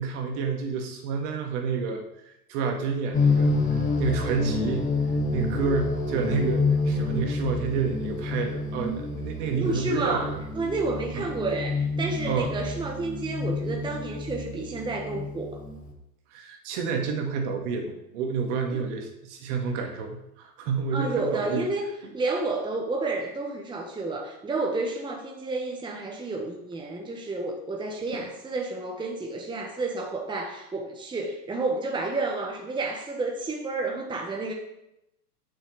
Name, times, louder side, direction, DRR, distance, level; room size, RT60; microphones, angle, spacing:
voice 1, 0.0-4.9 5.3-10.4 11.1-11.3 12.2-12.5 16.3-21.7 28.1-28.2, right 5 dB, 50° right, 3 dB, 1.9 m, -29 dB
sound 1, 3.1-15.9, left 3 dB, 15° left, 1.9 m, -28 dB
voice 2, 9.6-10.3 10.5-15.6 18.7-18.8 20.9-21.8 22.1-34.5, right 3 dB, 10° right, 1 dB, 1.3 m, -30 dB
6.4 x 6.2 x 7.3 m, 0.86 s
hypercardioid pair, 110°, 46 cm